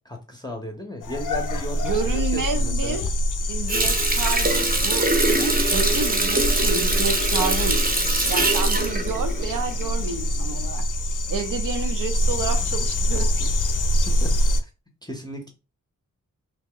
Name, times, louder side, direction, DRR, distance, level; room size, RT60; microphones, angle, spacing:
voice 1, 0.0-3.1 14.1-14.4 15.0-15.5, left 1 dB, 10° left, 0.6 m, -35 dB
sound 1, 1.0-14.6, equal, 65° left, 0.5 m, -25 dB
voice 2, 1.8-3.1 3.5-7.8 8.3-10.8 11.3-13.5, right 5 dB, 70° right, 0.6 m, -30 dB
Water tap faucet, 3.7-10.1 10.5-10.6, right 2 dB, 25° right, 0.7 m, -23 dB
2.9 x 2.1 x 3.6 m
wide cardioid pair, 70°, 33 cm